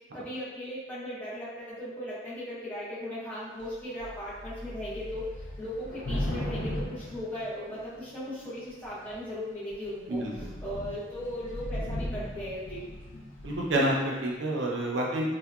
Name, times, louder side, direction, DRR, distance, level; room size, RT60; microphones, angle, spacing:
voice 1, 0.1-5.3 5.6-10.2 10.6-12.8, equal, 10° left, -11 dB, 0.8 m, -37 dB
Thunder / Rain, 3.6-3.7 4.0-8.1 8.8-9.3 9.7-9.9 10.1-13.9, left 1 dB, 85° left, 0.4 m, -37 dB
voice 2, 10.1-10.5 13.4-15.3, right 1 dB, 80° right, -2 dB, 0.5 m, -28 dB
2.8 x 2.1 x 2.3 m, 1.2 s
head